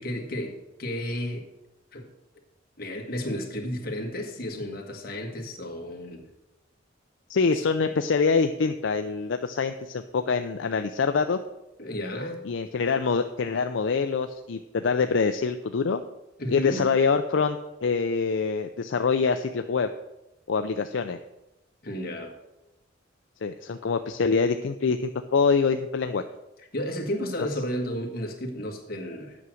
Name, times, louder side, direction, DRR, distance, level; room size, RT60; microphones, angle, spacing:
voice 1, 0.0-1.5 1.9-2.1 2.8-6.2 7.9-8.0 11.8-12.4 16.4-16.9 21.8-22.3 26.7-29.4, equal, 50° left, 3 dB, 1.7 m, -32 dB
voice 2, 7.3-11.4 12.4-16.0 16.5-19.9 20.5-21.2 23.4-26.2, left 5 dB, 75° left, 8 dB, 0.5 m, -25 dB
8.5 x 6.2 x 7.7 m, 0.96 s
head